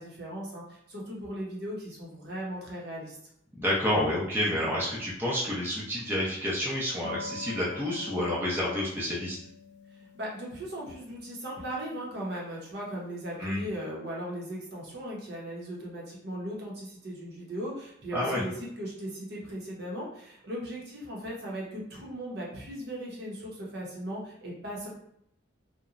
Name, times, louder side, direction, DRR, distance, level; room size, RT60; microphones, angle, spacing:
voice 1, 0.0-3.2 9.9-24.9, equal, 55° right, -4 dB, 0.8 m, -38 dB
voice 2, 3.6-9.4 13.4-13.6 18.1-18.4, left 1 dB, 10° right, -7 dB, 0.5 m, -29 dB
sound 1, 7.0-13.2, left 2 dB, 55° left, 0.3 m, -47 dB
2.9 x 2.1 x 2.4 m, 0.74 s
head